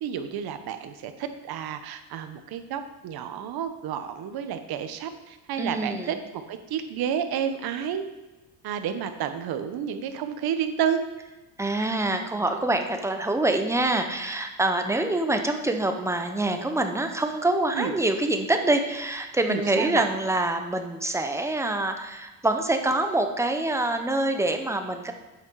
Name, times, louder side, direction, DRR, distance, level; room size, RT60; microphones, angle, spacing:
voice 1, 0.0-8.0 8.6-11.0 17.7-17.9 19.5-20.0, right 8 dB, 60° right, 9 dB, 0.9 m, -30 dB
voice 2, 5.6-6.2 11.6-25.1, right 2 dB, 5° right, 6 dB, 0.8 m, -25 dB
8.1 x 5.7 x 4.7 m, 1.1 s
cardioid pair, 110°, 43 cm